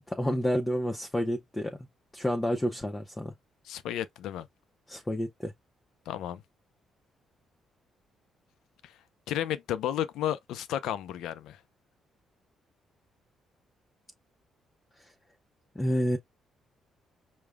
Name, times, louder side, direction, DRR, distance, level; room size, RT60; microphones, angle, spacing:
voice 1, 0.1-1.8 2.1-3.3 4.9-5.5 15.7-16.2, equal, 15° left, 0.8 m, -29 dB
voice 2, 3.6-4.5 6.1-6.4 8.8-9.0 9.3-11.6, left 11 dB, 85° left, 0.6 m, -32 dB
5.1 x 2.2 x 3.5 m
cardioid pair, 90°, 0 cm